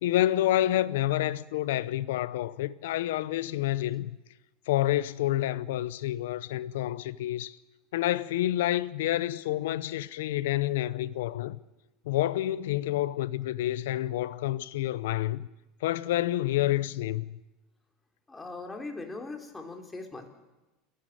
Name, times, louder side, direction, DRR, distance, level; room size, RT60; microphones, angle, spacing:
voice 1, 0.0-4.1 4.7-7.6 7.9-11.6 12.1-15.5 15.8-17.4, left 14 dB, 80° left, 0.7 m, -28 dB
voice 2, 18.3-20.3, left 3 dB, 15° left, 3.5 m, -40 dB
28.5 x 11.5 x 9.1 m
supercardioid pair, 105°, 0 cm